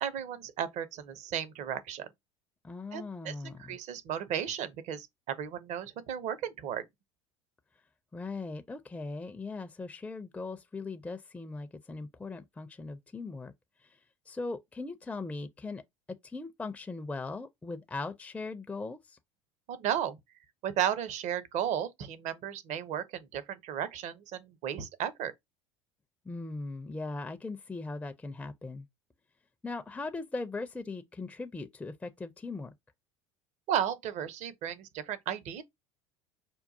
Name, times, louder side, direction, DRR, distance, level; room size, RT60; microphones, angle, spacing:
voice 1, 0.0-2.1 2.9-6.8 19.7-20.2 20.6-25.3 33.7-35.6, right 9 dB, 50° right, 0.7 m, -34 dB
voice 2, 2.6-3.8 8.1-13.5 13.8-14.0 14.3-15.8 16.2-19.2 26.3-28.9 29.6-32.7, left 3 dB, 10° left, 0.4 m, -39 dB
5.3 x 2.2 x 2.6 m
hypercardioid pair, 70°, 16 cm